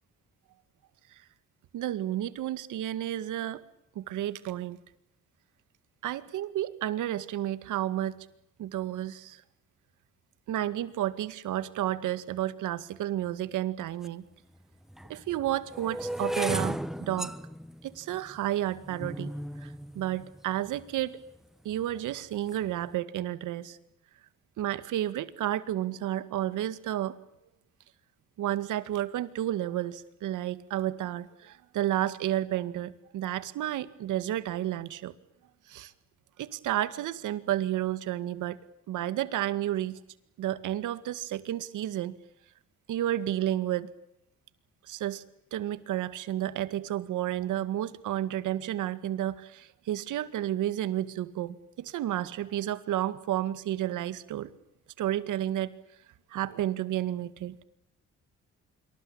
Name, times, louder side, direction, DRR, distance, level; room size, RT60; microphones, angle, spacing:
voice 1, 1.7-3.6 4.0-4.8 6.0-8.2 8.6-9.4 10.5-14.3 15.1-17.3 17.8-19.3 19.6-21.2 21.6-23.8 24.6-27.1 28.4-35.1 35.7-35.9 36.4-38.6 38.9-40.0 40.4-42.1 42.9-43.9 44.9-45.2 45.5-54.5 55.0-55.7 56.3-57.6, right 13 dB, 85° right, 14 dB, 2.1 m, -31 dB
sound 1, 14.0-14.1 14.9-21.0 21.7-22.1 22.3-22.7, equal, ahead, 1.1 m, -36 dB
26.5 x 24.0 x 8.8 m, 0.80 s
cardioid pair, 90°, 30 cm